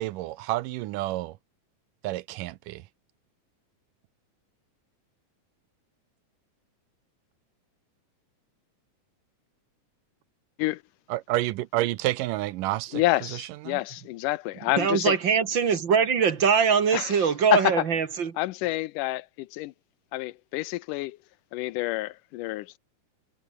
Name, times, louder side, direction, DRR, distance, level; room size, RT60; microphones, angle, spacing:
voice 1, 0.0-1.4 2.0-2.8 11.1-13.8, right 17 dB, 90° right, 2.4 m, -30 dB
voice 2, 12.9-15.2 16.9-17.1 17.5-17.7 18.4-19.7 20.1-21.2 21.5-22.8, left 18 dB, 90° left, 2.2 m, -28 dB
voice 3, 14.8-18.4, right 6 dB, 45° right, 1.9 m, -22 dB
omnidirectional pair, 3.7 m